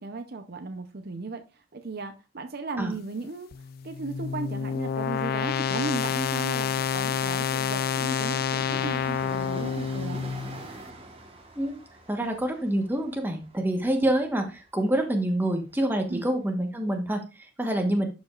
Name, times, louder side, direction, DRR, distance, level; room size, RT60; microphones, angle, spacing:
voice 1, 0.0-1.4 1.7-3.5 3.8-10.2 16.1-16.3, right 3 dB, 50° right, 7 dB, 0.6 m, -36 dB
sound 1, 3.5-10.6, left 7 dB, 45° left, 0.3 m, -28 dB
Train, 8.6-16.0 16.3-16.4, right 2 dB, 30° right, 1.3 m, -45 dB
voice 2, 12.1-18.1, right 1 dB, 10° right, 3 dB, 1.1 m, -27 dB
11.5 x 5.2 x 2.4 m, 0.29 s
head